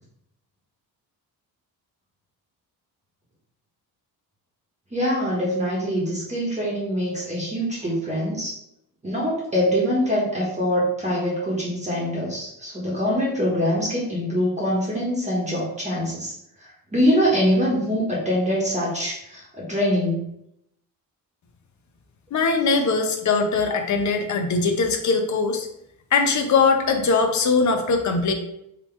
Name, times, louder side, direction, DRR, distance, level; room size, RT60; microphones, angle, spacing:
voice 1, 4.9-8.6 9.0-16.3 16.6-20.3, equal, 20° right, -5 dB, 1.1 m, -24 dB
voice 2, 22.3-25.7 26.1-28.3, left 4 dB, 50° left, 5 dB, 0.8 m, -21 dB
3.8 x 3.0 x 4.5 m, 0.80 s
cardioid pair, 140°, 38 cm